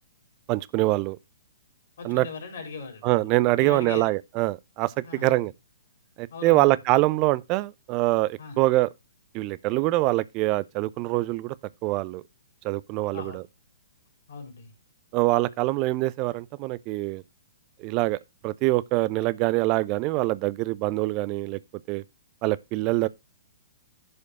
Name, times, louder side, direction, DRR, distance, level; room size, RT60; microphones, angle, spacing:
voice 1, 0.5-1.2 2.0-2.3 3.0-4.9 5.2-5.5 6.2-8.9 9.3-11.5 11.8-12.2 12.6-13.4 15.1-17.2 17.8-21.6 21.9-22.0 22.4-23.1, right 19 dB, 30° right, 0.6 m, -24 dB
voice 2, 2.0-3.2 3.5-4.1 5.0-5.5 6.3-6.8 8.4-8.6 13.1-13.4 14.3-14.7 22.9-23.0, left 4 dB, 55° left, 3.6 m, -39 dB
11.0 x 5.1 x 4.9 m
figure-of-eight pair, 115°, 0 cm